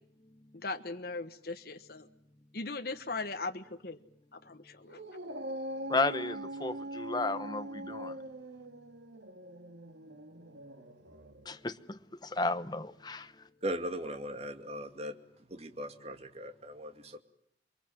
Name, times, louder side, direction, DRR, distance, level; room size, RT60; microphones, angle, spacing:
voice 1, 0.5-2.1 2.5-4.0 4.3-5.0, left 3 dB, 50° left, 1.2 m, -39 dB
Dog, 4.9-11.5, right 1 dB, 70° right, 2.1 m, -42 dB
voice 2, 5.9-8.1 11.5-13.3, left 2 dB, 20° left, 1.1 m, -33 dB
voice 3, 13.6-15.2 15.5-17.2, equal, 35° right, 2.4 m, -38 dB
28.5 x 23.5 x 7.7 m
head